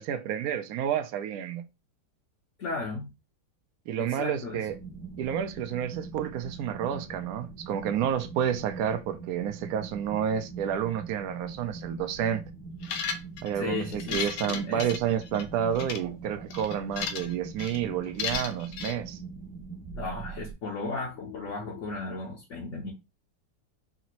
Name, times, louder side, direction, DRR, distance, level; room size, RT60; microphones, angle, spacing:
voice 1, 0.0-1.6 3.9-4.7 5.2-12.4 13.4-19.2, right 9 dB, 70° right, 0.9 m, -30 dB
voice 2, 2.6-3.1 4.0-4.7 13.5-14.2 14.5-14.9 18.9-19.0 19.9-22.9, left 3 dB, 55° left, 0.9 m, -35 dB
sound 1, 4.7-20.5, right 5 dB, 50° right, 1.1 m, -42 dB
sound 2, 12.8-13.5 13.9-15.4 15.8-16.0 16.5-17.3 17.6-17.8 18.2-18.9, left 6 dB, 85° left, 1.3 m, -34 dB
4.9 x 2.6 x 3.0 m
omnidirectional pair, 2.0 m